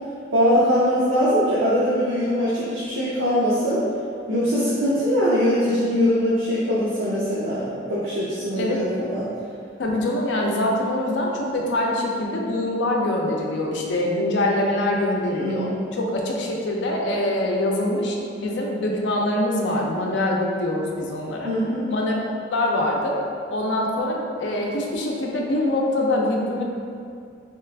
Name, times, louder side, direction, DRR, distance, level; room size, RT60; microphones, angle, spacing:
voice 1, 0.3-3.8 4.3-9.3 15.2-15.8 21.4-21.9, equal, 85° right, -9 dB, 0.5 m, -22 dB
voice 2, 9.8-21.5 21.9-22.1 22.5-23.2 23.5-26.6, left 1 dB, 70° left, -1 dB, 0.5 m, -24 dB
3.0 x 2.4 x 3.3 m, 2.3 s
head